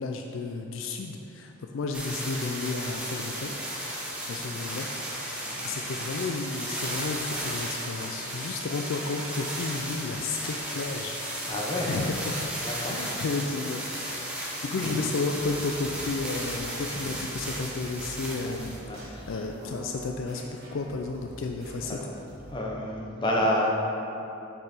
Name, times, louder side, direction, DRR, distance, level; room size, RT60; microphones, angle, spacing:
voice 1, 0.0-3.5 4.3-11.5 11.9-12.4 12.9-14.1 14.6-22.0, left 3 dB, 60° left, 3 dB, 0.4 m, -33 dB
sound 1, 1.9-18.8 19.6-19.7, equal, 5° right, 0.9 m, -35 dB
voice 2, 4.3-4.8 5.4-5.6 11.5-12.0 12.6-13.2 14.8-14.9 16.9-17.0 18.4-18.6 18.8-19.4 21.9-22.0 22.5-23.7, left 1 dB, 20° left, -3 dB, 0.8 m, -30 dB
sound 2, 15.3-22.5, equal, 45° right, 1.4 m, -46 dB
6.5 x 5.5 x 4.3 m, 2.9 s
head